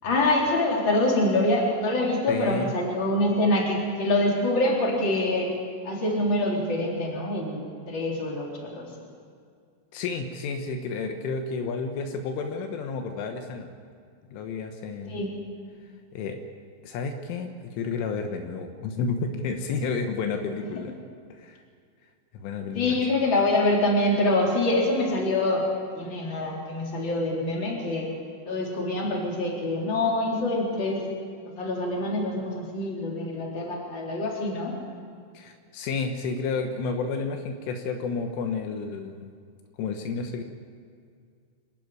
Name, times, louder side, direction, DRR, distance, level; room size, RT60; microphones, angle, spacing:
voice 1, 0.0-5.5 5.8-8.9 15.1-15.3 22.7-25.6 25.9-28.1 28.4-31.1 31.6-34.7, left 1 dB, 25° left, -2 dB, 3.8 m, -25 dB
voice 2, 2.3-2.7 9.9-13.7 14.3-15.2 16.1-16.4 16.8-21.0 21.3-21.6 22.3-23.0 35.4-39.3 39.8-40.4, left 4 dB, 80° left, 5 dB, 3.7 m, -31 dB
26.0 x 13.0 x 9.5 m, 2.2 s
omnidirectional pair, 5.6 m